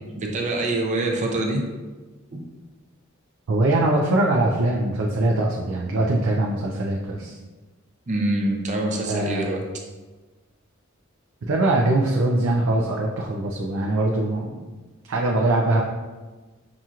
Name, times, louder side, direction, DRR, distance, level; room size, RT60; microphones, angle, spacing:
voice 1, 0.2-1.6 2.3-2.4 8.1-9.6, right 2 dB, 35° right, 0 dB, 0.5 m, -25 dB
voice 2, 3.5-7.4 9.1-9.6 11.5-14.7 15.1-15.8, right 2 dB, 90° right, -2 dB, 0.5 m, -22 dB
5.9 x 2.9 x 2.4 m, 1.2 s
head